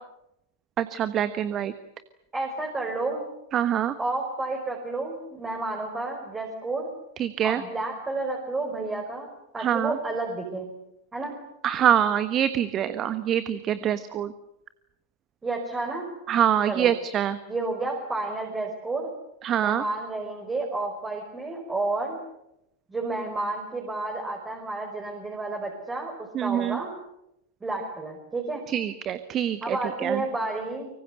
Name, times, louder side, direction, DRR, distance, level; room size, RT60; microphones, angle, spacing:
voice 1, 0.8-1.7 3.5-3.9 7.2-7.6 9.6-10.0 11.6-14.3 16.3-17.4 19.4-19.8 26.3-26.8 28.7-29.8 30.0-30.2, right 10 dB, 30° right, 12 dB, 1.3 m, -25 dB
voice 2, 2.3-3.2 4.0-6.9 7.4-10.7 11.1-11.4 15.4-16.1 16.7-16.9 17.5-19.1 19.6-22.2 22.9-26.9 27.6-28.6 29.6-30.9, right 2 dB, 15° right, 2 dB, 5.0 m, -31 dB
25.0 x 24.5 x 8.1 m, 0.83 s
figure-of-eight pair, 90°, 0 cm